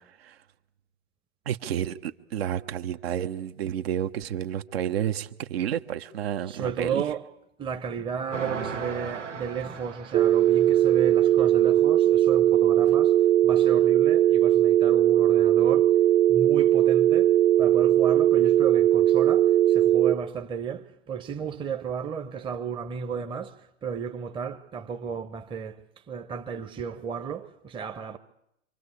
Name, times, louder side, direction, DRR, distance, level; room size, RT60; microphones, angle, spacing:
voice 1, 0.1-0.4 1.4-7.0, right 10 dB, 55° right, 1.4 m, -30 dB
voice 2, 6.5-7.2 7.6-13.2 13.4-15.9 16.3-23.5 23.8-25.8 26.1-28.2, right 6 dB, 15° right, 1.1 m, -33 dB
sound 1, 8.3-11.0, right 6 dB, 90° right, 1.7 m, -36 dB
sound 2, 10.1-20.1, right 12 dB, 35° right, 1.2 m, -19 dB
26.5 x 25.0 x 8.4 m
hypercardioid pair, 120°, 36 cm